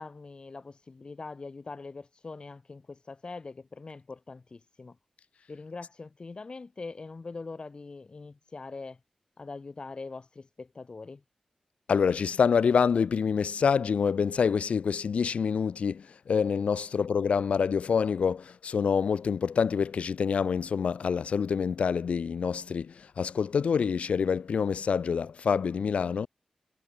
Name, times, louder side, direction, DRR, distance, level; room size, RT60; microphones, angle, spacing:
voice 1, 0.0-5.0 5.5-9.0 9.4-11.2, left 3 dB, 45° left, 4.6 m, -42 dB
voice 2, 11.9-26.3, left 6 dB, 70° left, 0.4 m, -26 dB
cardioid pair, 70°, 2 cm